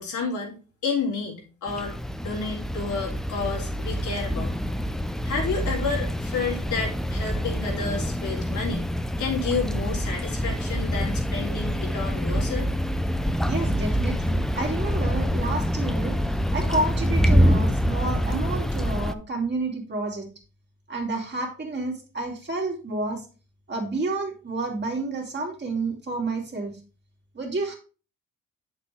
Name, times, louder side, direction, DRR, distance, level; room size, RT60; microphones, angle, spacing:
voice 1, 0.0-1.9 2.2-4.5 5.2-8.8 9.2-12.7, left 4 dB, 75° left, -1 dB, 3.1 m, -30 dB
sound 1, 1.7-19.1, equal, ahead, 0.5 m, -26 dB
voice 2, 13.4-16.2 16.5-20.3 20.9-23.3 23.7-26.8 27.3-27.7, right 2 dB, 35° right, 1 dB, 2.6 m, -30 dB
7.7 x 6.8 x 3.4 m, 0.35 s
cardioid pair, 90°, 30 cm